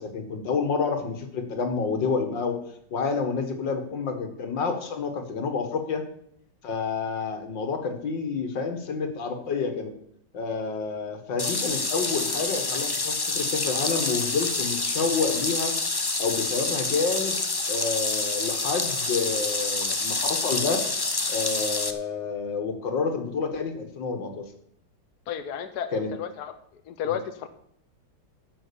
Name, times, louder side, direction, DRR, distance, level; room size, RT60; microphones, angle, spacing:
voice 1, 0.0-2.6 2.9-6.0 6.6-9.9 10.3-15.7 16.2-17.4 17.7-20.8 21.3-24.4 25.9-26.1 27.0-27.2, left 5 dB, 90° left, 6 dB, 2.5 m, -29 dB
sound 1, 11.4-21.9, left 3 dB, 30° left, 0.4 m, -27 dB
voice 2, 25.3-26.5 26.9-27.5, left 9 dB, 65° left, 9 dB, 1.3 m, -32 dB
12.5 x 7.7 x 7.0 m, 0.70 s
omnidirectional pair, 1.9 m